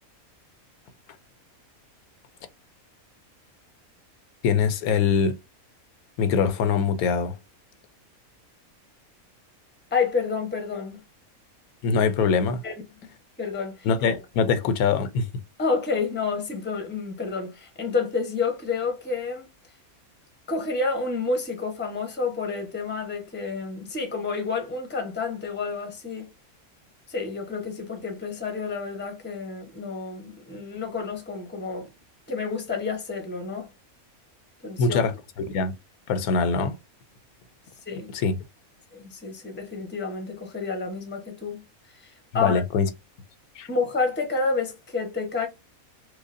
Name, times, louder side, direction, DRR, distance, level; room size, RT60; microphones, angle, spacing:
voice 1, 4.4-5.4 6.2-7.4 11.8-12.6 13.8-15.3 34.8-35.1 35.5-35.7 36.1-36.7 38.1-38.4 42.3-42.9 43.6-43.7, left 5 dB, 85° left, 1.1 m, -23 dB
voice 2, 9.9-11.0 12.6-12.8 13.0-13.1 13.4-13.9 15.6-19.5 20.5-26.3 27.1-31.9 32.3-33.7 34.6-35.0 37.9-38.1 38.9-41.6 42.0-42.6 43.7-45.5, left 4 dB, 10° left, 0.7 m, -29 dB
4.8 x 2.1 x 2.5 m
omnidirectional pair, 1.5 m